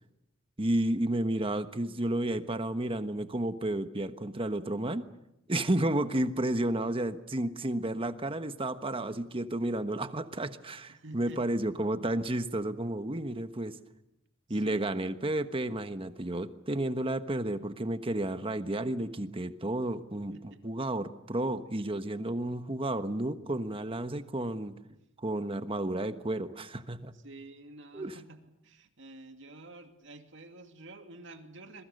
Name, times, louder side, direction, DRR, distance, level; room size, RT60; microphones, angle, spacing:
voice 1, 0.6-5.1 5.5-13.8 14.5-20.3 20.6-24.7 25.2-27.1 27.9-28.2, right 1 dB, 25° right, 10 dB, 1.2 m, -32 dB
voice 2, 10.9-11.4 14.5-14.9 20.3-20.6 27.1-31.8, right 2 dB, 65° right, 6 dB, 2.5 m, -49 dB
27.0 x 22.5 x 6.7 m, 0.86 s
head